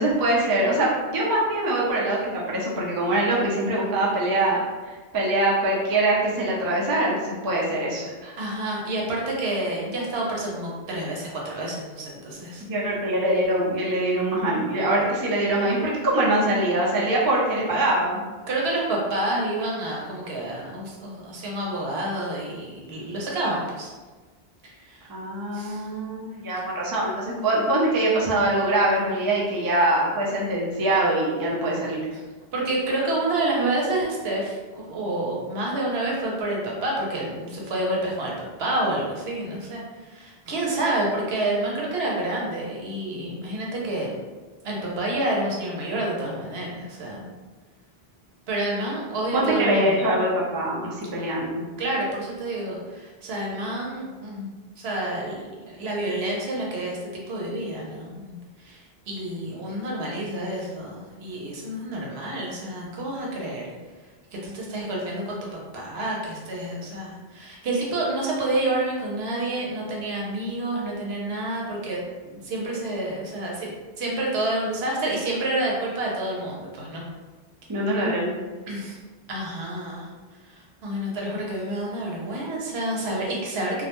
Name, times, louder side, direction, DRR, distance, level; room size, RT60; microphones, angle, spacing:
voice 1, 0.0-8.0 12.6-18.2 25.1-32.0 49.3-51.7 62.7-62.9 77.7-78.3, right 1 dB, 35° right, -4 dB, 0.4 m, -23 dB
voice 2, 8.0-12.6 18.5-23.9 24.6-25.1 25.5-25.9 32.1-32.2 32.5-38.3 38.6-44.2 44.6-47.3 48.5-50.0 51.8-57.0 57.3-58.4 58.6-63.7 64.3-73.7 74.0-77.0 78.7-79.0 79.3-80.1 80.5-83.9, right 1 dB, 80° right, -3 dB, 0.9 m, -29 dB
2.3 x 2.1 x 2.9 m, 1.3 s
omnidirectional pair, 1.0 m